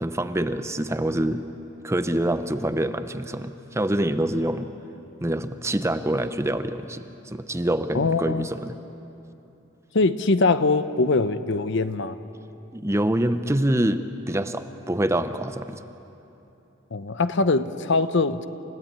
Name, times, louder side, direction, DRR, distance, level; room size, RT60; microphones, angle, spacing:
voice 1, 0.0-1.4 1.8-4.7 5.2-8.7 12.7-15.8, right 1 dB, 15° right, 10 dB, 0.6 m, -26 dB
voice 2, 7.9-8.5 9.9-12.2 16.9-18.5, left 3 dB, 60° left, 12 dB, 0.8 m, -22 dB
29.0 x 16.5 x 8.7 m, 2.9 s
head